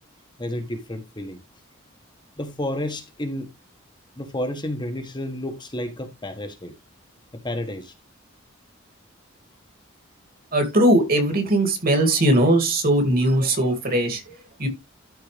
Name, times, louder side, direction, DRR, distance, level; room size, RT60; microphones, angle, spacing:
voice 1, 0.4-1.4 2.4-3.5 4.2-6.8 7.3-7.9, left 1 dB, 25° left, 1.3 m, -31 dB
voice 2, 10.5-14.7, right 1 dB, 50° right, 2.7 m, -20 dB
13.0 x 4.3 x 3.3 m
head